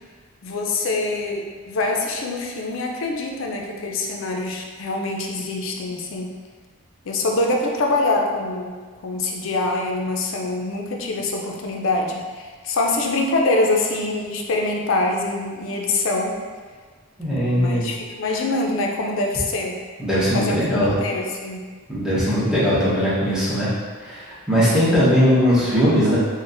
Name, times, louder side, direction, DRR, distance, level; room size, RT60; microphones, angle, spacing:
voice 1, 0.4-6.3 7.0-16.4 17.5-19.8 20.3-21.7, left 2 dB, 60° left, 1 dB, 0.4 m, -24 dB
voice 2, 17.2-17.8 20.0-20.9 21.9-23.7 24.0-26.2, equal, 5° right, -10 dB, 0.8 m, -19 dB
3.9 x 2.1 x 2.5 m, 1.5 s
head